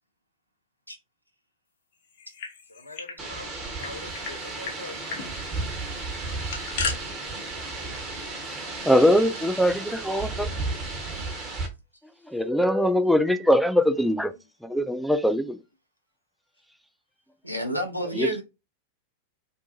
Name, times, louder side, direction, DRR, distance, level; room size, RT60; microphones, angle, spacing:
sound 1, 2.1-3.2 3.5-3.6 3.8-4.3 4.6-4.8 5.1-5.3 6.2-7.0, left 5 dB, 50° left, 0.8 m, -33 dB
voice 1, 2.7-3.5 3.8-5.0 13.0-13.1 18.0-18.2, left 2 dB, 85° left, 0.5 m, -43 dB
sound 2, 3.2-11.7, right 3 dB, 25° right, 1.0 m, -33 dB
voice 2, 8.4-10.5 12.3-14.3 14.6-15.6 18.1-18.4, equal, ahead, 0.3 m, -22 dB
voice 3, 17.4-18.4, equal, 90° right, 0.5 m, -29 dB
2.6 x 2.2 x 2.8 m
figure-of-eight pair, 90°, 0 cm